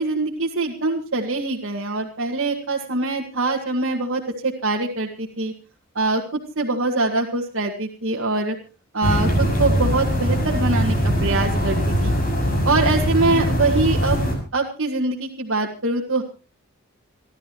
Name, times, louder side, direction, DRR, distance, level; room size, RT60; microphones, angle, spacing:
voice 1, 0.0-5.5 6.0-6.2 6.6-8.6 8.9-11.8 12.0-12.1 12.6-14.2 14.5-16.2, right 3 dB, 60° right, 0 dB, 1.8 m, -23 dB
sound 1, 9.0-14.3, equal, 40° left, 6.6 m, -21 dB
29.0 x 12.0 x 3.1 m, 0.34 s
head